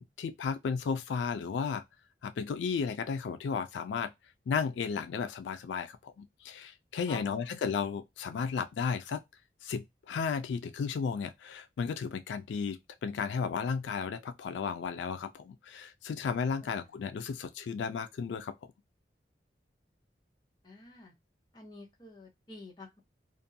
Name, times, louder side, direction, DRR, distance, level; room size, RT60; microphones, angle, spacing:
voice 1, 0.0-1.8 2.2-4.1 4.5-9.2 9.6-18.5, left 6 dB, 90° left, 0.3 m, -34 dB
voice 2, 7.1-7.6 16.6-16.9 20.6-21.1 21.5-23.0, left 2 dB, 25° left, 0.9 m, -49 dB
2.5 x 2.1 x 2.6 m
head